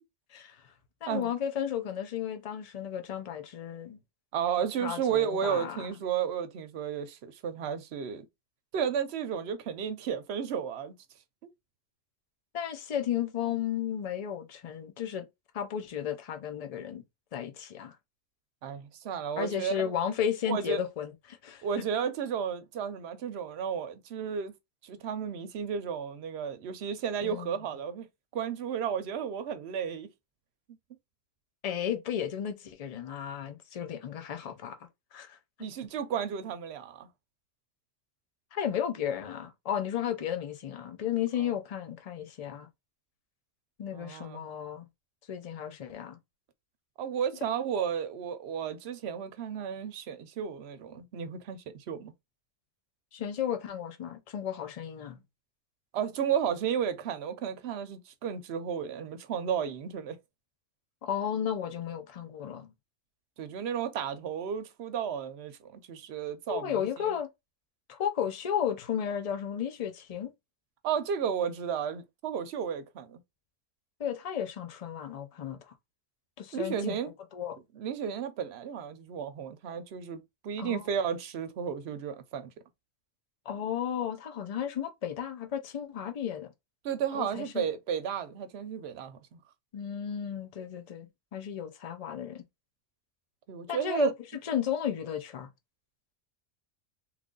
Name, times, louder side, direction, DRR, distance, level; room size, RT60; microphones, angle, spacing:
voice 1, 0.3-0.7 1.0-4.0 4.8-5.9 12.5-15.3 15.5-17.0 17.3-18.0 19.4-21.7 27.2-27.5 31.6-35.7 38.5-42.7 43.8-44.9 45.3-46.2 53.1-55.2 61.0-62.7 66.5-67.3 67.9-70.3 74.0-75.6 76.4-77.0 77.3-77.6 80.6-80.8 83.5-86.5 87.1-87.7 89.7-92.4 93.7-94.1 94.4-95.5, left 9 dB, 50° left, 0.4 m, -34 dB
voice 2, 4.3-8.3 8.7-10.9 11.4-11.5 18.6-19.9 20.5-20.8 21.6-24.5 24.8-28.1 28.3-30.1 35.6-37.1 41.4-41.5 43.9-44.4 47.0-52.1 55.9-60.2 63.4-66.9 70.8-73.2 76.5-77.1 77.7-82.5 86.8-89.4 93.5-94.1, right 8 dB, 65° right, 0.8 m, -33 dB
3.1 x 2.4 x 3.7 m
omnidirectional pair, 1.3 m